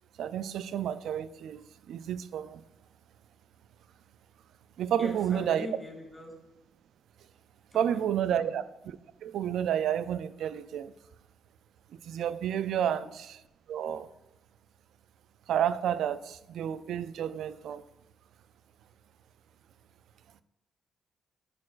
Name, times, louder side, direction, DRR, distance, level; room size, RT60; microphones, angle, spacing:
voice 1, 0.2-2.6 4.8-5.7 7.7-10.9 12.0-13.4 13.7-14.1 15.5-17.8, right 9 dB, 70° right, 0.3 m, -31 dB
voice 2, 5.0-6.3 7.7-8.6 12.8-13.1, left 1 dB, 5° left, 2.1 m, -43 dB
11.0 x 4.4 x 2.5 m
cardioid pair, 115°, 0 cm